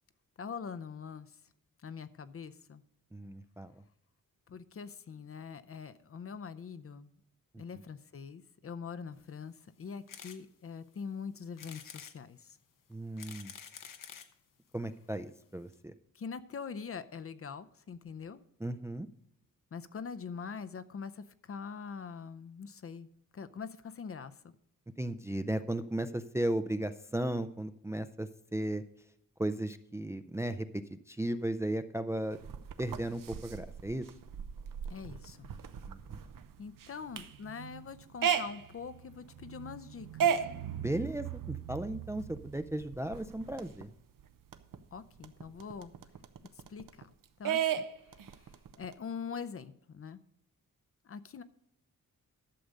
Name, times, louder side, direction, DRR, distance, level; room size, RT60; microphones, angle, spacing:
voice 1, 0.4-1.3 1.8-2.8 4.5-7.1 7.6-12.6 16.1-18.4 19.7-23.1 23.3-24.5 34.9-35.5 36.6-40.3 44.9-45.9 46.7-47.1 47.4-47.8 48.1-48.4 48.8-50.2 51.1-51.4, left 6 dB, 45° left, 13 dB, 0.6 m, -43 dB
voice 2, 3.1-3.7 12.9-13.5 14.7-15.9 18.6-19.1 25.0-28.8 29.4-30.7 31.1-32.4 32.8-34.1 35.9-36.0 40.7-43.9, right 1 dB, 10° right, 10 dB, 0.4 m, -35 dB
sound 1, 10.1-10.4 10.9-11.0 11.6-12.2 12.9-14.3 15.1-15.2 15.4-15.5 15.7-15.8, left 8 dB, 75° left, 0.9 m, -48 dB
sound 2, 32.3-43.8 44.2-44.3 44.5-47.0 47.5-48.9, right 8 dB, 80° right, 0.9 m, -36 dB
11.5 x 6.8 x 5.1 m, 0.73 s
wide cardioid pair, 135°, 33 cm